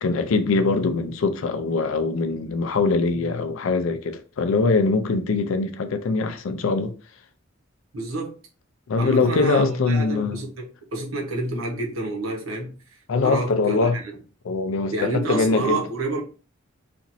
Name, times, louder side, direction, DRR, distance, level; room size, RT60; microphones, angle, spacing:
voice 1, 0.0-6.9 8.9-10.4 13.1-14.0 14.4-15.9, left 3 dB, 70° left, 0.4 m, -22 dB
voice 2, 7.9-8.3 9.0-12.7 13.2-14.0 14.9-16.2, right 2 dB, 85° right, 1.0 m, -28 dB
2.9 x 2.5 x 2.6 m
head